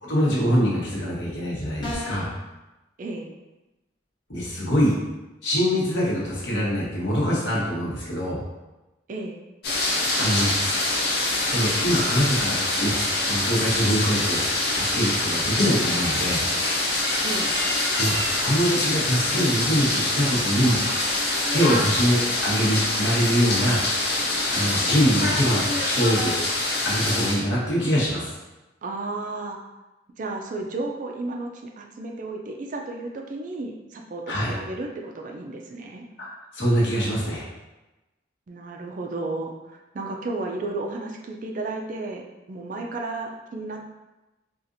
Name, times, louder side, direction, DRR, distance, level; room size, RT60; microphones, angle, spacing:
voice 1, 0.0-2.3 4.3-5.0 5.4-8.4 10.2-10.5 11.3-13.0 13.2-16.4 17.9-20.8 21.5-23.8 24.5-26.4 26.8-28.3 34.3-34.5 36.2-36.3 36.5-37.5, equal, 70° left, -5 dB, 1.0 m, -24 dB
sound 1, 1.8-2.3, left 1 dB, 25° left, 0.8 m, -32 dB
voice 2, 3.0-3.3 9.1-9.4 17.2-17.5 21.7-21.9 28.8-29.6 30.2-36.1 38.5-43.9, right 2 dB, 40° right, 2 dB, 0.3 m, -33 dB
sound 2, 9.6-27.4, left 2 dB, 55° left, 0.7 m, -25 dB
4.1 x 2.4 x 2.6 m, 1.0 s
head